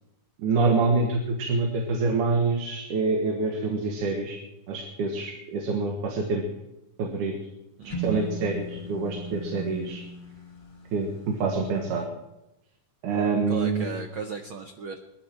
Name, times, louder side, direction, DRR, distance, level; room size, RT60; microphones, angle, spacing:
voice 1, 0.4-4.4 4.7-6.4 7.0-7.3 8.0-10.0 10.9-12.1 13.0-14.0, right 3 dB, 90° right, 2 dB, 3.0 m, -26 dB
voice 2, 7.8-8.3 13.5-15.0, right 6 dB, 70° right, 5 dB, 1.2 m, -36 dB
sound 1, 7.9-11.8, right 2 dB, 25° left, 1.2 m, -37 dB
21.0 x 14.0 x 4.5 m, 0.92 s
omnidirectional pair, 3.4 m